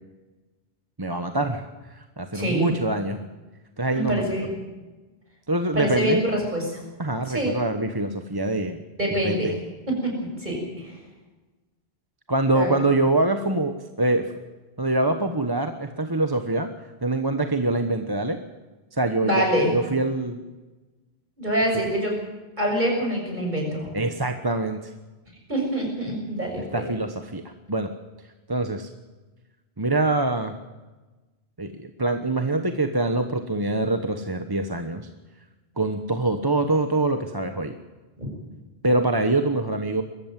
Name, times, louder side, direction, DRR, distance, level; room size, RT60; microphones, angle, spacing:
voice 1, 1.0-3.2 3.8-4.2 5.5-6.2 7.0-8.8 9.1-9.5 12.3-14.3 14.8-16.7 17.0-18.4 19.0-20.4 23.9-24.8 26.7-27.4 27.7-27.9 28.5-28.9 29.8-30.5 31.6-35.1 35.8-37.7 38.8-40.0, right 2 dB, 25° right, 6 dB, 1.1 m, -24 dB
voice 2, 2.3-2.7 3.9-4.6 5.7-6.8 7.3-7.5 9.0-9.5 9.9-10.9 12.5-12.7 19.2-19.7 21.4-22.1 22.6-23.9 25.5-26.9 38.2-38.3, equal, 45° right, 0 dB, 7.1 m, -25 dB
22.0 x 14.0 x 9.1 m, 1.2 s
omnidirectional pair, 1.1 m